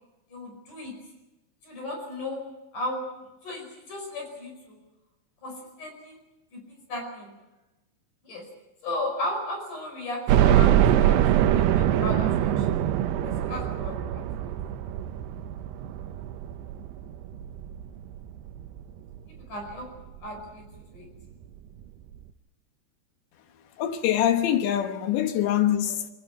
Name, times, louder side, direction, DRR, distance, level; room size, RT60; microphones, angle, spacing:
voice 1, 0.3-0.9 1.6-2.4 2.7-3.0 3.4-4.8 5.4-6.2 6.5-7.3 8.2-8.5 8.8-12.7 13.2-14.9 19.3-19.9 20.2-20.6 20.9-21.1, left 1 dB, 45° left, 6.5 m, -35 dB
sound 1, 10.3-19.2 19.7-19.8 20.1-20.2 21.4-21.5 21.8-21.9, right 11 dB, 75° right, 3.0 m, -24 dB
voice 2, 23.8-26.1, left 11 dB, 80° left, 3.5 m, -24 dB
27.5 x 22.0 x 6.0 m
omnidirectional pair, 5.0 m